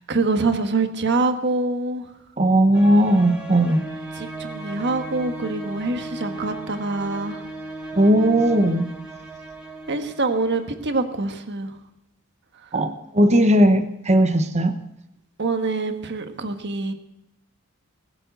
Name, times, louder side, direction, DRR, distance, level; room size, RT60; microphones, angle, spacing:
voice 1, 0.1-2.1 4.1-7.4 9.9-11.7 15.4-16.9, right 3 dB, 55° right, 8 dB, 1.4 m, -25 dB
voice 2, 2.4-3.9 7.9-8.9 12.7-14.7, right 1 dB, 30° right, 7 dB, 1.0 m, -17 dB
sound 1, 2.7-11.1, right 2 dB, 5° right, 2.9 m, -36 dB
20.0 x 7.6 x 7.9 m, 0.84 s
head